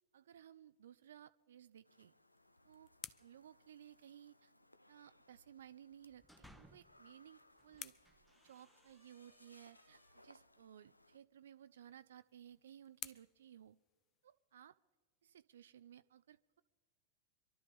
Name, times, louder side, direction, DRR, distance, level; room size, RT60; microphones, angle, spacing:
voice 1, 0.1-2.1 2.6-2.9 3.2-4.5 4.9-7.9 8.4-13.8 14.2-14.8 15.2-16.6, right 10 dB, 65° right, 14 dB, 0.3 m, -59 dB
sound 1, 1.8-11.2, left 1 dB, 85° left, 0.4 m, -68 dB
sound 2, 2.1-4.6 6.7-9.1 11.4-14.5, left 11 dB, 30° left, 0.5 m, -57 dB
sound 3, 5.9-7.0 7.5-10.3, equal, ahead, 0.9 m, -66 dB
26.5 x 12.0 x 3.5 m, 1.4 s
figure-of-eight pair, 90°, 0 cm